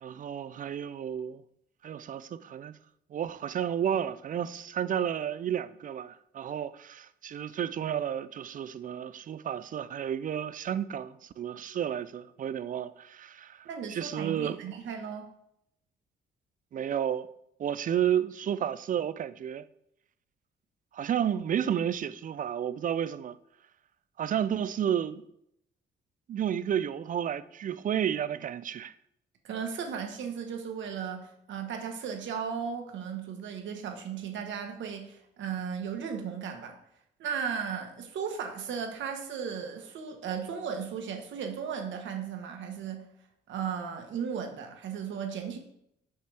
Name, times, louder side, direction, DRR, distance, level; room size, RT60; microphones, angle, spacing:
voice 1, 0.0-1.4 1.8-2.7 3.1-14.6 16.7-17.3 17.6-19.6 20.9-23.4 24.2-25.2 26.3-28.9, right 9 dB, 40° right, 0.4 m, -31 dB
voice 2, 13.6-15.3 29.4-36.8 37.2-43.1 43.5-45.6, right 7 dB, 70° right, 1.2 m, -36 dB
5.8 x 5.5 x 3.4 m
cardioid pair, 90°, 20 cm